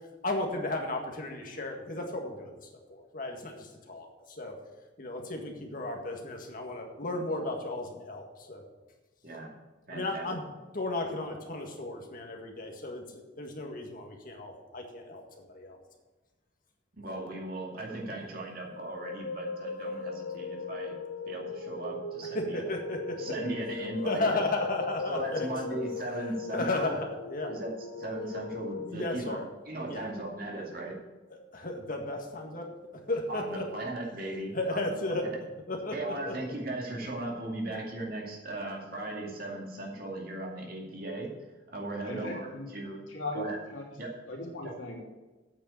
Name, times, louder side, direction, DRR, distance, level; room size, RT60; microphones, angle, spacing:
voice 1, 0.2-2.6 2.9-4.5 5.0-8.6 9.9-10.4 10.7-15.2 15.5-15.8 22.3-23.3 24.1-25.8 26.5-27.5 28.9-29.5 29.9-30.1 31.5-32.6 33.1-33.6 34.5-35.2 35.7-36.3, left 2 dB, 45° left, 2 dB, 1.8 m, -34 dB
voice 2, 9.9-10.3 16.9-21.0 21.3-22.7 23.2-24.3 25.1-26.9 27.5-29.4 29.6-31.0 33.3-34.9 35.9-41.3 41.7-43.0 43.3-43.6 44.0-44.1 44.6-44.7, right 2 dB, 50° right, -1 dB, 2.4 m, -37 dB
sound 1, 18.7-28.9, left 4 dB, 70° left, 0.8 m, -39 dB
voice 3, 42.0-42.7 43.1-43.4 43.7-43.8 44.3-45.0, left 2 dB, 90° left, -2 dB, 3.0 m, -37 dB
8.6 x 6.7 x 8.4 m, 1.2 s
head